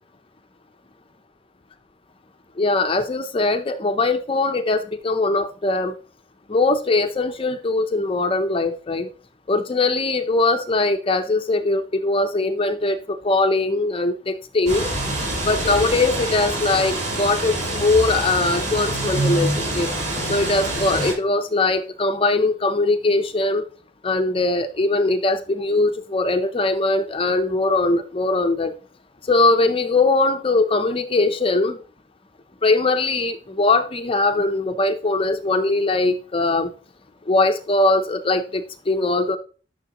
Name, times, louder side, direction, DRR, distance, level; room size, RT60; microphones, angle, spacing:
voice 1, 2.6-5.9 6.5-9.1 9.5-14.9 15.4-19.9 20.3-23.7 24.0-28.7 29.3-31.8 32.6-36.7 37.3-39.4, left 2 dB, 30° left, 0.6 m, -21 dB
sound 1, 14.7-21.1, right 1 dB, 40° right, 5.6 m, -25 dB
13.0 x 6.5 x 3.0 m
head